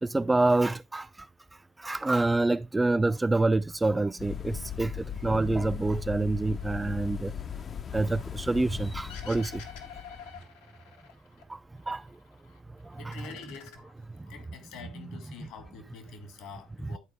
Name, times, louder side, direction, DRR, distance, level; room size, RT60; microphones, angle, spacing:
voice 1, 0.0-1.3 1.8-7.3 7.9-9.6 11.5-12.2 12.8-13.1 14.2-14.3, right 2 dB, 15° right, 0.4 m, -27 dB
sound 1, 4.2-10.4, left 8 dB, 40° left, 0.6 m, -38 dB
sound 2, 9.1-11.4 11.8-12.6 12.9-14.4, left 6 dB, 85° left, 1.7 m, -48 dB
voice 2, 13.0-13.8 14.3-17.0, left 5 dB, 65° left, 2.4 m, -46 dB
11.5 x 4.5 x 3.6 m
hypercardioid pair, 70°, 0 cm